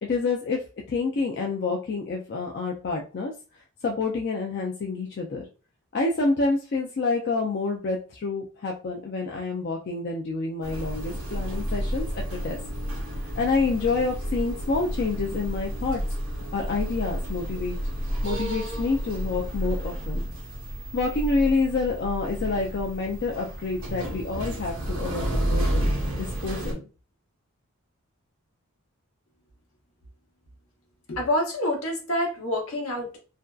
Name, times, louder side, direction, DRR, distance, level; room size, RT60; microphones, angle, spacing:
voice 1, 0.0-3.3 3.8-5.5 5.9-12.6 13.4-16.0 16.5-17.8 18.2-20.2 20.9-26.8, left 3 dB, 50° left, 0 dB, 0.3 m, -28 dB
sound 1, 10.6-26.7, equal, 65° right, 0.8 m, -31 dB
voice 2, 31.1-33.2, left 1 dB, 75° left, 1 dB, 0.9 m, -27 dB
2.5 x 2.2 x 2.3 m, 0.34 s
head